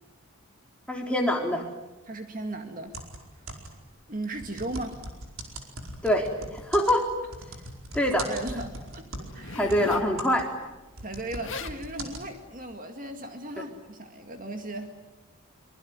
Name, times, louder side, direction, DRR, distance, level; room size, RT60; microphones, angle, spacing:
voice 1, 0.9-1.6 6.0-7.1 7.9-8.3 9.5-10.5, equal, 5° left, 0 dB, 3.8 m, -24 dB
voice 2, 2.0-3.0 4.1-5.0 8.3-9.0 9.3-9.7 11.0-14.9, right 1 dB, 40° right, 5 dB, 2.1 m, -36 dB
sound 1, 2.9-3.9 4.4-9.4 9.7-12.2, right 1 dB, 75° right, 4.8 m, -40 dB
Zipper (clothing), 9.3-10.1 11.1-11.2 11.4-11.8 12.5-12.7, left 3 dB, 65° left, 1.9 m, -38 dB
25.0 x 23.5 x 9.5 m, 1.1 s
head